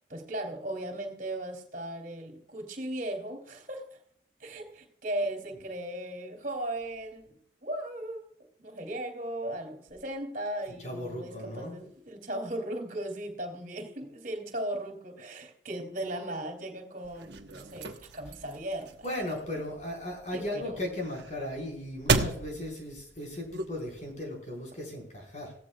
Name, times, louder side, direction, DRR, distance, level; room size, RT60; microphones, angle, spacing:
voice 1, 0.1-4.0 4.4-8.3 8.6-19.0 20.3-20.8, right 1 dB, 45° right, 3 dB, 2.9 m, -37 dB
voice 2, 10.8-11.8 19.0-25.5, left 1 dB, 40° left, 0 dB, 4.8 m, -37 dB
sound 1, 17.0-24.1, right 3 dB, 70° right, 1.1 m, -35 dB
17.0 x 14.5 x 2.4 m, 0.65 s
head